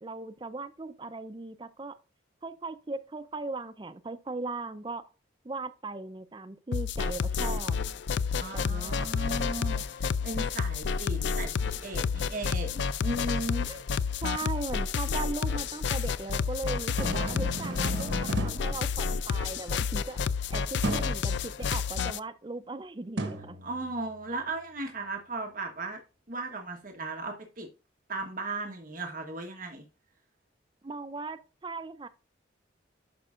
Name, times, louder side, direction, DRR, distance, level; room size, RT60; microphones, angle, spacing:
voice 1, 0.0-2.0 2.4-5.1 5.4-7.8 8.5-9.1 13.7-13.8 14.2-20.2 20.5-20.7 20.9-23.6 30.8-32.1, right 3 dB, 25° right, 0.5 m, -38 dB
sound 1, 6.7-22.2, left 5 dB, 70° left, 0.4 m, -30 dB
voice 2, 8.4-13.7 23.6-26.0 26.3-27.7 28.1-29.8, right 2 dB, 45° right, 1.1 m, -36 dB
sound 2, 16.8-19.6 20.8-21.2 23.2-24.2, right 2 dB, 75° right, 1.4 m, -35 dB
11.0 x 5.3 x 2.4 m
head